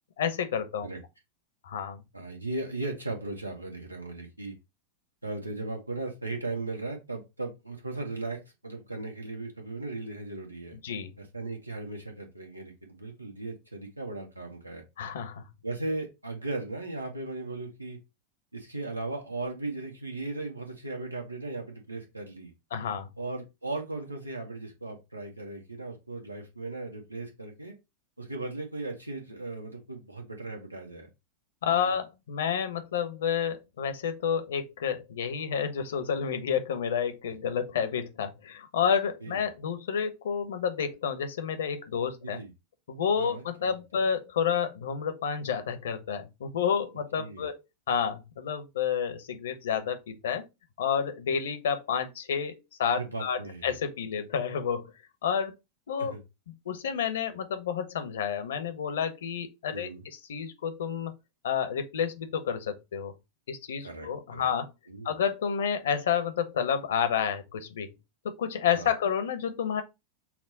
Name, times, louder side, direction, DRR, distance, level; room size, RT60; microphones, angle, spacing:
voice 1, 0.2-0.9 1.6-2.0 10.8-11.1 15.0-15.4 22.7-23.1 31.6-42.4 42.9-47.6 47.9-50.5 50.8-54.9 55.2-55.5 55.9-56.1 56.7-61.1 61.4-63.1 63.5-64.7 65.0-67.9 68.2-69.8, left 7 dB, 60° left, 0.7 m, -30 dB
voice 2, 2.1-4.6 5.2-10.8 11.2-14.8 15.6-18.0 18.5-22.5 23.2-27.8 28.2-31.1 31.7-31.9 39.2-39.4 42.2-42.5 43.2-44.0 47.2-47.5 53.0-53.7 56.0-56.2 59.7-60.0 63.8-64.5 64.9-65.2 68.7-69.0, right 2 dB, 85° right, 1.0 m, -37 dB
5.8 x 2.1 x 3.9 m
figure-of-eight pair, 90°, 0 cm